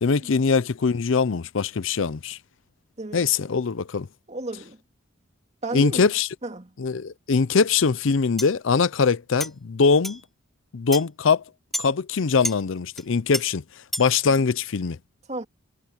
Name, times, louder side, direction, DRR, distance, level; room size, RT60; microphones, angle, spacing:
voice 1, 0.0-2.4 3.1-4.1 5.7-6.3 6.8-10.2 10.7-11.4 11.8-13.6 14.0-15.0, left 5 dB, 65° left, 0.5 m, -22 dB
voice 2, 3.0-3.5 4.3-4.8 5.6-6.1 6.4-6.7 15.3-15.4, right 2 dB, 30° right, 2.2 m, -33 dB
sound 1, 8.4-8.5 9.4-9.5 10.0-10.2 10.9-11.0 11.7-11.9 12.4-12.6 12.9-13.0 13.3-13.4 13.9-14.1, equal, ahead, 3.4 m, -29 dB
head